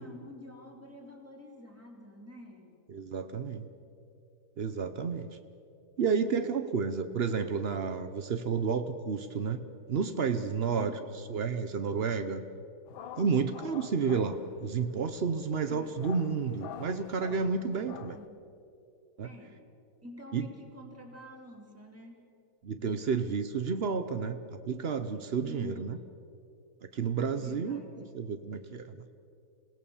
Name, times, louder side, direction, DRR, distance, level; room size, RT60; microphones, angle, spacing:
voice 1, 0.0-2.8 10.6-11.0 15.7-16.0 18.1-18.4 19.2-19.6 20.0-22.3 25.4-26.0 27.4-28.2, left 1 dB, 5° right, 0 dB, 3.0 m, -48 dB
voice 2, 2.9-3.7 4.6-5.3 6.0-11.0 11.3-12.4 13.2-18.2 19.2-19.3 20.3-20.5 22.6-26.0 26.9-27.8 28.1-29.0, right 5 dB, 80° right, 9 dB, 0.5 m, -31 dB
sound 1, 12.9-18.3, left 9 dB, 70° left, 1.5 m, -47 dB
27.5 x 18.0 x 7.2 m, 2.6 s
omnidirectional pair, 2.3 m